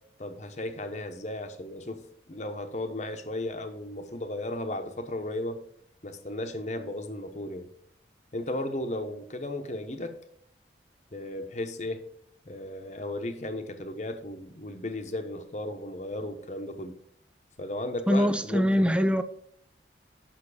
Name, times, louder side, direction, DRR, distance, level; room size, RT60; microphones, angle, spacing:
voice 1, 0.2-5.6 6.0-7.7 8.3-10.1 11.1-12.0 12.4-17.0 17.6-18.9, left 1 dB, 40° left, 1.0 m, -35 dB
voice 2, 18.1-19.2, equal, 5° right, 0.5 m, -23 dB
8.5 x 5.8 x 5.0 m
head